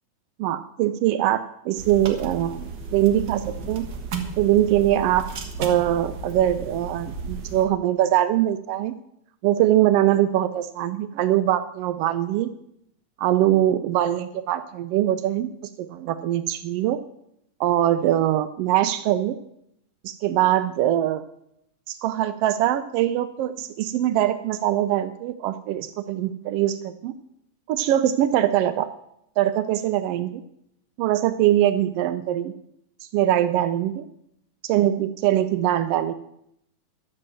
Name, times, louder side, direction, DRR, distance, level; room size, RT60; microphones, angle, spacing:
voice 1, 0.4-1.4 1.6-3.9 4.4-5.2 5.6-8.9 9.4-12.5 13.2-15.5 15.8-17.0 17.6-19.4 20.0-21.2 21.9-27.2 27.7-28.9 29.4-30.4 31.0-32.5 33.1-34.1 34.6-36.1, right 12 dB, 85° right, 11 dB, 1.3 m, -22 dB
sound 1, 1.8-7.6, right 4 dB, 50° right, 1.5 m, -34 dB
12.0 x 7.6 x 7.6 m, 0.78 s
omnidirectional pair, 3.4 m